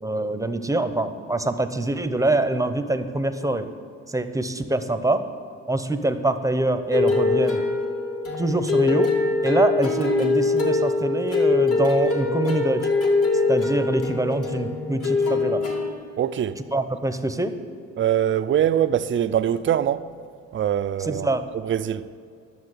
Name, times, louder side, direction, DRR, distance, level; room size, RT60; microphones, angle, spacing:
voice 1, 0.0-3.7 4.1-5.3 5.7-7.7 8.4-9.1 9.4-12.9 13.5-15.6 16.7-17.6 21.0-21.4, right 2 dB, 10° right, 0.9 m, -24 dB
sound 1, 6.9-15.9, left 3 dB, 50° left, 2.3 m, -23 dB
voice 2, 16.2-16.6 18.0-20.1 20.5-21.3 21.6-22.0, right 10 dB, 40° right, 0.5 m, -23 dB
12.0 x 7.2 x 8.2 m
cardioid pair, 90°, 30 cm